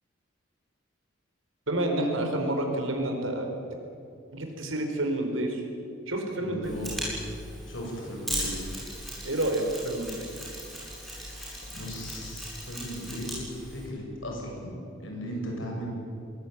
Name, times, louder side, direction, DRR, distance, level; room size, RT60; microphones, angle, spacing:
voice 1, 1.7-3.5 4.3-5.6 6.1-6.8 9.2-10.3, right 1 dB, 80° right, 3 dB, 4.4 m, -29 dB
voice 2, 6.4-7.2 7.7-8.7 11.0-15.9, equal, 75° left, 0 dB, 7.2 m, -37 dB
Mechanisms, 6.6-13.9, equal, ahead, 7.8 m, -38 dB
22.0 x 19.0 x 9.5 m, 2.6 s
head